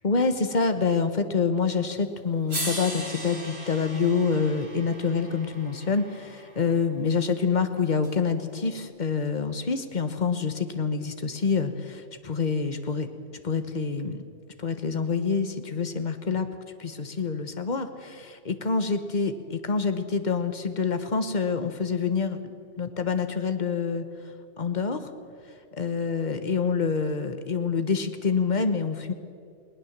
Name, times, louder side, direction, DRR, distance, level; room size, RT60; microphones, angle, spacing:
voice 1, 0.0-13.1 13.4-14.2 14.6-16.5 16.8-22.4 22.8-24.1 24.6-25.1 25.7-29.1, left 5 dB, 40° left, 9 dB, 1.3 m, -27 dB
sound 1, 1.9-2.0 2.5-6.7 8.0-8.1, right 1 dB, 60° right, 3.2 m, -38 dB
20.5 x 18.5 x 7.3 m, 2.3 s
omnidirectional pair, 1.2 m